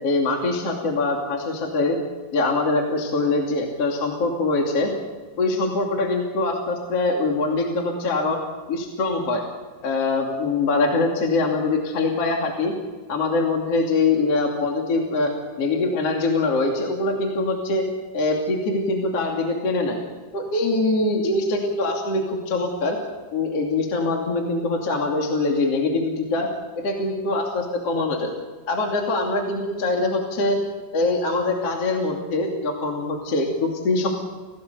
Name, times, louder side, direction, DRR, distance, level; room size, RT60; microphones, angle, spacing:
voice 1, 0.0-2.0 2.3-4.9 5.4-8.4 8.7-9.4 9.8-12.7 13.1-15.3 15.6-17.8 18.1-20.0 20.3-23.0 23.3-26.5 26.7-28.3 28.7-30.6 30.9-34.1, left 3 dB, 40° left, 0 dB, 2.9 m, -23 dB
30.0 x 17.5 x 6.9 m, 1.3 s
omnidirectional pair, 5.7 m